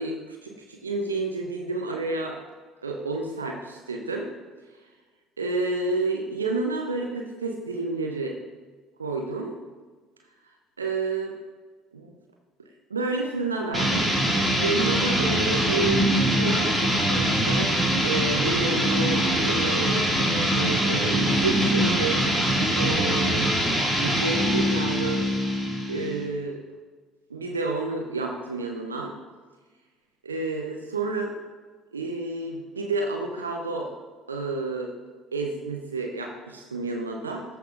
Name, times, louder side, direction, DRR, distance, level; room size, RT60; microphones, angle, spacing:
voice 1, 0.0-2.4 2.8-4.3 5.4-8.4 9.0-9.6 10.8-11.3 11.9-12.1 12.9-14.1 14.6-17.7 18.0-23.5 24.0-25.2 25.9-26.6 27.3-29.1 30.2-31.3 31.9-33.9 34.3-34.9 35.3-37.4, right 3 dB, 85° right, 1 dB, 0.7 m, -30 dB
sound 1, 13.7-26.2, equal, 5° right, 2.1 m, -23 dB
14.0 x 5.7 x 2.5 m, 1.4 s
figure-of-eight pair, 60°, 0 cm